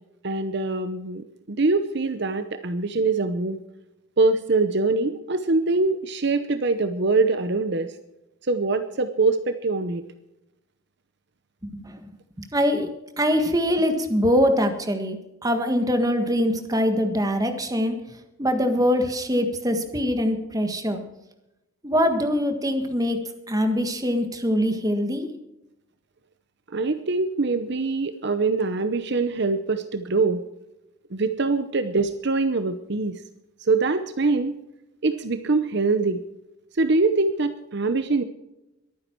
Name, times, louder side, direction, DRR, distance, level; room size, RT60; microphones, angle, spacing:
voice 1, 0.2-3.6 4.2-7.9 8.5-10.0 26.7-30.4 31.1-33.2 33.6-34.6 35.0-36.2 36.8-38.2, right 3 dB, 50° right, 10 dB, 0.8 m, -23 dB
voice 2, 11.6-12.0 12.4-12.9 13.2-15.2 15.4-18.0 18.4-21.0 21.8-23.2 23.5-25.3, equal, 15° right, 7 dB, 1.7 m, -23 dB
22.5 x 9.6 x 4.6 m, 0.93 s
head